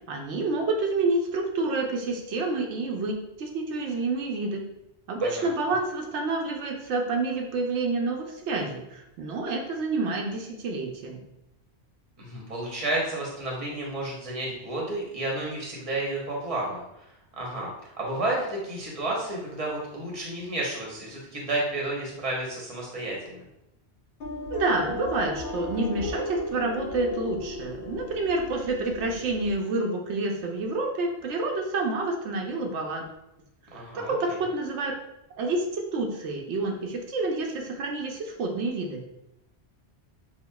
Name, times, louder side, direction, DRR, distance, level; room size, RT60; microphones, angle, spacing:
voice 1, 0.1-4.6 5.1-11.2 24.5-33.1 33.7-35.0 35.4-39.0, right 3 dB, 85° right, 1 dB, 0.9 m, -28 dB
voice 2, 12.2-16.8 17.4-23.4 33.7-34.4, right 2 dB, 35° right, -3 dB, 0.9 m, -31 dB
sound 1, 24.2-29.6, left 2 dB, 60° left, 0.7 m, -35 dB
5.6 x 2.3 x 2.2 m, 0.87 s
omnidirectional pair, 1.1 m